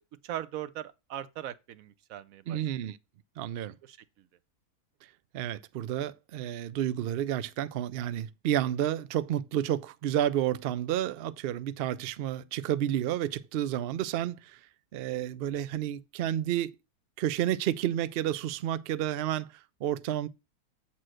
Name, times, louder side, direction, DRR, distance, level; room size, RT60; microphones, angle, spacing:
voice 1, 0.2-2.6 3.8-4.0, right 12 dB, 70° right, 1.0 m, -39 dB
voice 2, 2.5-3.0 3.4-3.8 5.3-14.6 14.9-16.7 17.2-20.3, right 11 dB, 90° right, 0.5 m, -30 dB
7.7 x 4.2 x 6.3 m
omnidirectional pair, 1.6 m